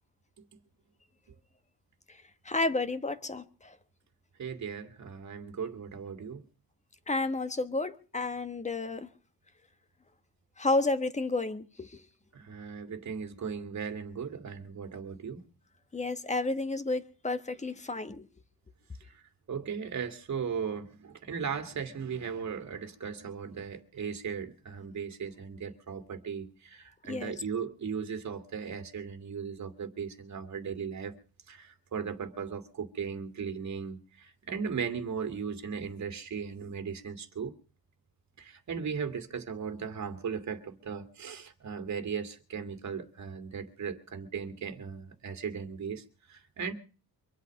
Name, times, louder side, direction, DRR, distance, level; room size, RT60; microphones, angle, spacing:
voice 1, 2.4-3.8 7.1-9.1 10.6-12.0 15.9-18.3 27.1-27.3, left 3 dB, 20° left, 1.3 m, -31 dB
voice 2, 4.4-6.4 12.3-15.5 19.1-19.2 19.5-31.2 31.5-37.5 38.4-46.7, right 6 dB, 50° right, 2.3 m, -37 dB
24.5 x 8.3 x 6.4 m
wide cardioid pair, 150°, 37 cm